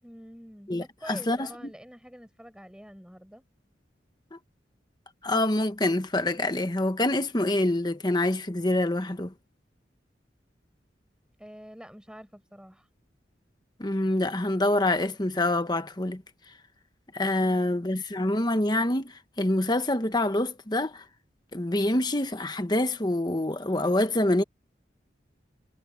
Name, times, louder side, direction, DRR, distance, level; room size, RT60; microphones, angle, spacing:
voice 1, 0.0-3.4 11.4-12.9 17.3-17.9, equal, 5° right, 6.6 m, -47 dB
voice 2, 0.7-1.5 4.3-4.4 5.2-9.3 13.8-16.2 17.1-21.0 21.5-24.4, left 1 dB, 25° left, 1.2 m, -26 dB
head